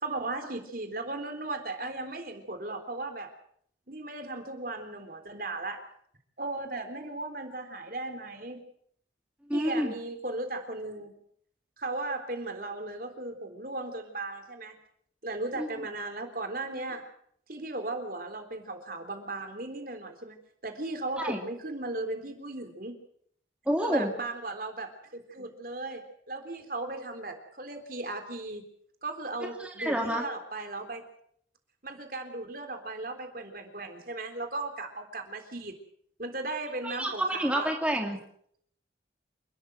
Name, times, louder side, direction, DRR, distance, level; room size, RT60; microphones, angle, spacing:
voice 1, 0.0-3.3 3.9-5.8 6.4-8.6 9.5-11.1 11.8-14.7 15.2-17.0 17.5-20.4 20.6-23.0 23.8-28.6 29.0-31.0 31.8-35.7 36.2-37.7, right 2 dB, 50° right, 6 dB, 3.6 m, -36 dB
voice 2, 9.5-9.9 15.6-15.7 21.2-21.4 23.7-24.1 29.6-30.2 36.8-38.2, equal, 5° right, 1 dB, 2.5 m, -28 dB
28.0 x 13.0 x 7.9 m, 0.67 s
head